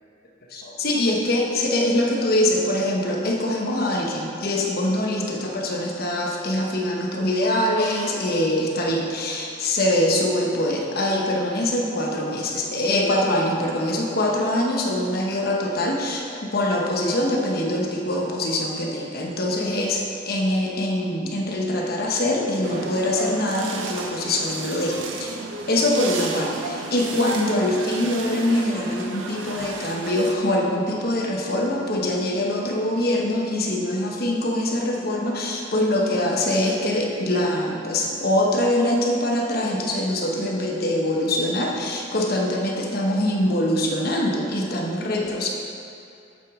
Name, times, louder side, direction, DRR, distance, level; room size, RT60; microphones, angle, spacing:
voice 1, 0.5-16.2 16.5-25.4 25.7-45.5, left 1 dB, 50° left, -1 dB, 1.1 m, -23 dB
sound 1, 22.6-30.3, right 3 dB, 80° right, 0.7 m, -34 dB
8.3 x 7.9 x 3.7 m, 2.6 s
head